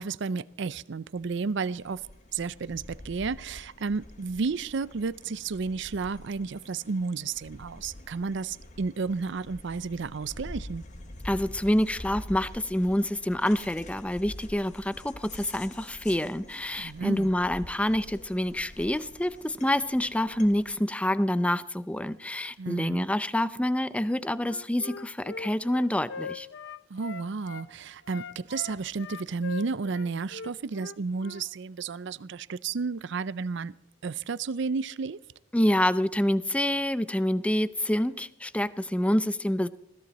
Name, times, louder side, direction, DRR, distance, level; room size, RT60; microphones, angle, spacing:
voice 1, 0.0-2.0 2.3-10.8 16.8-17.3 22.6-23.1 26.9-33.7 34.0-35.2, right 4 dB, 65° right, 0.5 m, -32 dB
sound 1, 1.2-20.8, left 1 dB, 40° left, 1.2 m, -46 dB
voice 2, 11.2-26.5 35.5-39.7, left 1 dB, 5° left, 0.5 m, -27 dB
Wind instrument woodwind instrument, 24.4-27.7 28.0-31.4, left 4 dB, 65° left, 0.8 m, -41 dB
21.0 x 15.0 x 4.2 m
head